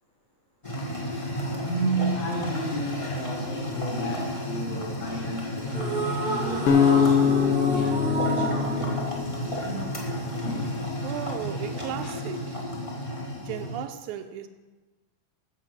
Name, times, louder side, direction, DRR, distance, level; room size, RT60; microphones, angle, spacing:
sound 1, 0.6-13.8, equal, 15° left, 1.2 m, -32 dB
voice 1, 1.6-8.8 9.6-10.0 10.4-10.7 12.0-12.2, right 1 dB, 70° left, -5 dB, 4.7 m, -33 dB
sound 2, 5.7-10.1, right 2 dB, 45° right, 0.6 m, -30 dB
sound 3, 6.7-9.8, left 8 dB, 85° left, 1.2 m, -23 dB
voice 2, 11.0-12.6 13.4-14.5, right 10 dB, 80° right, 8 dB, 2.0 m, -35 dB
15.0 x 5.9 x 6.4 m, 1.2 s
omnidirectional pair, 3.7 m